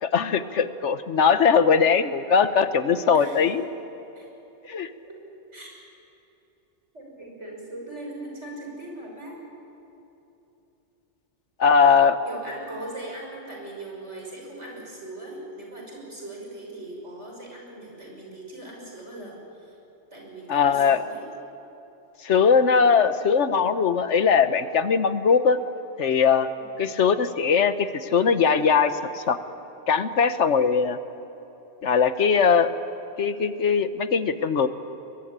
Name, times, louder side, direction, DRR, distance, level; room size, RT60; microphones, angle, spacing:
voice 1, 0.0-3.6 4.7-4.9 11.6-12.2 20.5-21.0 22.2-25.6 26.0-26.5 26.8-29.4 29.9-31.0 31.8-32.7 33.2-34.7, left 6 dB, 85° left, 11 dB, 1.4 m, -20 dB
voice 2, 6.9-9.4 12.2-19.8 20.1-21.2 26.6-26.8, right 1 dB, 85° right, -1 dB, 6.5 m, -40 dB
23.5 x 21.5 x 8.9 m, 3.0 s
omnidirectional pair, 1.2 m